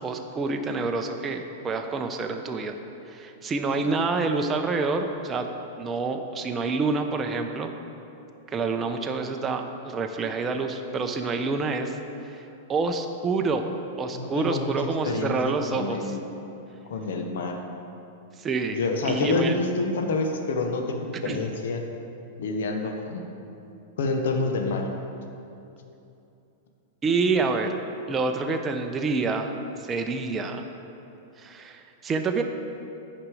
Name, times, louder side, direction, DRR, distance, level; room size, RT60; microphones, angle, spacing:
voice 1, 0.0-2.7 3.1-5.5 5.8-7.7 8.5-12.0 12.2-13.6 14.0-16.2 18.4-19.5 21.2-21.5 27.0-27.8 28.1-29.5 29.8-30.7 31.4-32.4, right 4 dB, 20° right, 4 dB, 0.5 m, -27 dB
voice 2, 14.1-15.3 15.7-16.2 16.9-17.6 18.7-21.8 22.4-23.2 24.0-24.9, left 3 dB, 75° left, 4 dB, 0.9 m, -27 dB
8.7 x 5.1 x 4.8 m, 2.8 s
hypercardioid pair, 125°, 0 cm